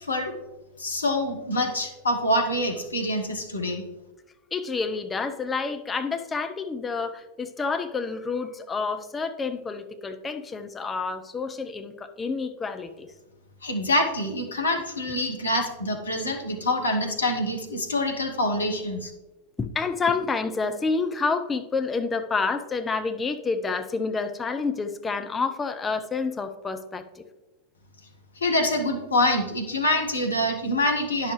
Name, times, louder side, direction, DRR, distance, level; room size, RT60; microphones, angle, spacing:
voice 1, 0.8-3.8 13.6-19.1 28.4-31.3, left 1 dB, 75° left, 3 dB, 1.2 m, -25 dB
voice 2, 4.5-13.1 19.6-27.2, left 4 dB, 15° left, 8 dB, 0.6 m, -29 dB
10.0 x 6.4 x 3.1 m, 1.1 s
figure-of-eight pair, 90°, 0 cm